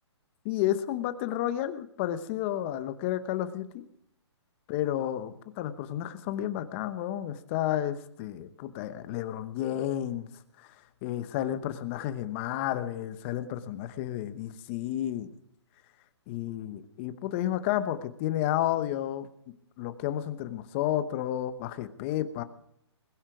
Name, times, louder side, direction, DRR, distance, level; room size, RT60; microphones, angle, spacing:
voice 1, 0.4-3.8 4.7-10.3 10.6-10.8 11.0-15.3 16.3-19.3 19.8-22.4, left 12 dB, 25° left, 12 dB, 1.0 m, -31 dB
21.5 x 11.5 x 4.9 m, 0.72 s
hypercardioid pair, 155°, 15 cm